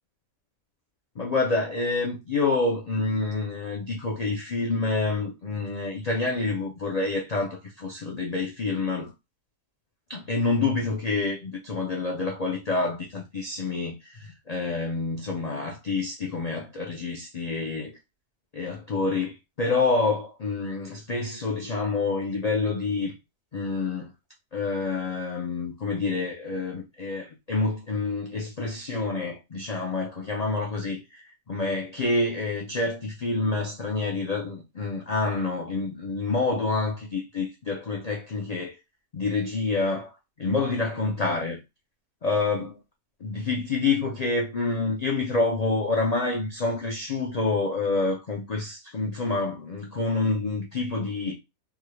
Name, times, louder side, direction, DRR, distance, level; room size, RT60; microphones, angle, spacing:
voice 1, 1.2-9.1 10.1-18.0 18.5-23.2 23.5-24.1 24.5-38.8 39.1-41.6 42.2-42.8 43.2-51.4, left 3 dB, 85° left, 0.3 m, -28 dB
3.5 x 2.2 x 3.1 m
omnidirectional pair, 1.6 m